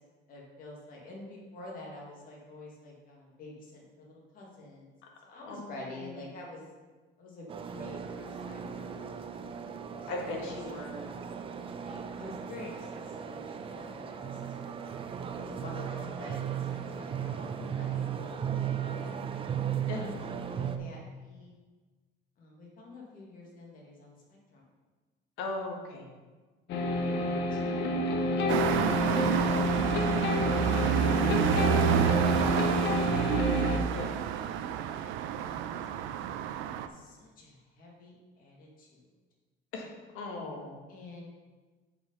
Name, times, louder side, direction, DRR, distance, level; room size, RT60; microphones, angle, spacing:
voice 1, 0.3-4.9 5.2-6.6 7.2-10.5 11.5-14.4 15.3-19.2 19.7-20.2 20.5-21.6 22.4-24.6 26.9-29.2 35.4-36.1 36.9-39.0 40.9-41.3, left 2 dB, 45° left, -2 dB, 2.1 m, -48 dB
sound 1, 7.5-20.8, right 8 dB, 30° right, 0.5 m, -36 dB
voice 2, 10.1-11.1 19.9-20.3 25.4-26.0 33.9-34.2 39.7-39.9 40.1-40.8, left 2 dB, 85° left, 1 dB, 1.8 m, -38 dB
sound 2, 26.7-33.8, left 1 dB, 65° left, 1.1 m, -29 dB
sound 3, 28.5-36.9, right 9 dB, 85° right, 0.6 m, -29 dB
7.6 x 5.4 x 5.5 m, 1.3 s
cardioid pair, 155°, 20 cm